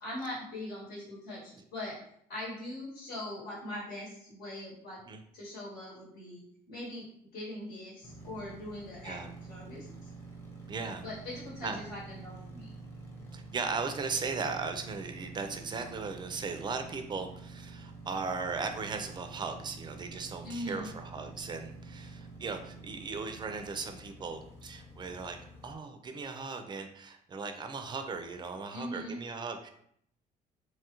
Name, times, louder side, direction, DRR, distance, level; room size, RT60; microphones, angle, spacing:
voice 1, 0.0-2.0 2.3-5.0 5.3-7.1 7.3-10.1 11.0-12.7 20.4-20.9 28.7-29.2, left 1 dB, 75° left, -5 dB, 1.1 m, -41 dB
sound 1, 8.0-25.8, right 3 dB, 15° left, 0.7 m, -48 dB
voice 2, 10.7-11.0 11.6-11.8 13.3-25.4 25.6-29.7, right 4 dB, 25° right, 6 dB, 0.3 m, -37 dB
2.9 x 2.3 x 2.9 m, 0.69 s
cardioid pair, 110°, 17 cm